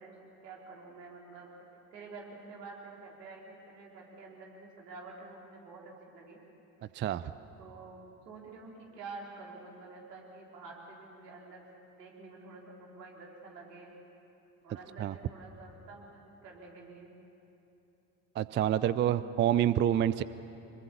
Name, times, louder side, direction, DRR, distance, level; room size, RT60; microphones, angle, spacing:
voice 1, 0.0-1.5 1.9-6.4 7.6-11.6 12.0-13.9 14.6-17.1, right 3 dB, 75° right, -2 dB, 3.8 m, -49 dB
voice 2, 18.4-20.2, right 11 dB, 25° right, 16 dB, 0.5 m, -27 dB
26.0 x 21.5 x 7.0 m, 2.9 s
figure-of-eight pair, 55°, 49 cm